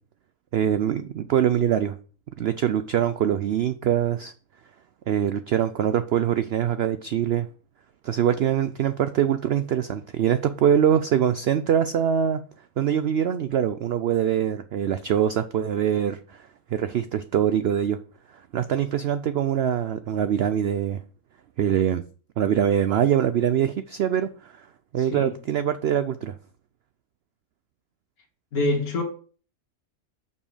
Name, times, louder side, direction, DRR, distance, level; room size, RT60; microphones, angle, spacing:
voice 1, 0.5-2.0 2.4-4.3 5.1-7.5 8.0-12.4 12.8-18.0 18.5-21.0 21.6-22.0 22.4-24.7 24.9-26.4, right 9 dB, 85° right, 0.5 m, -23 dB
voice 2, 25.0-25.3 28.5-29.0, left 2 dB, 70° left, 2.0 m, -25 dB
7.0 x 5.6 x 4.9 m
omnidirectional pair, 1.6 m